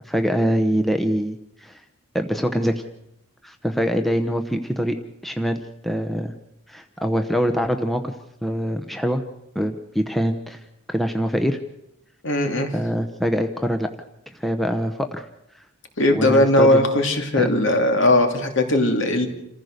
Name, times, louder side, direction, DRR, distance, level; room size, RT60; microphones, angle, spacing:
voice 1, 0.0-1.8 2.1-2.8 3.4-5.0 5.2-6.3 6.7-8.1 8.4-9.2 9.5-10.6 10.9-11.6 12.7-13.9 14.4-15.3 16.1-16.8 17.4-17.5, equal, ahead, 5 dB, 0.9 m, -24 dB
voice 2, 12.2-12.7 16.0-19.3, left 1 dB, 60° left, 5 dB, 2.6 m, -18 dB
28.0 x 15.0 x 6.6 m, 0.85 s
head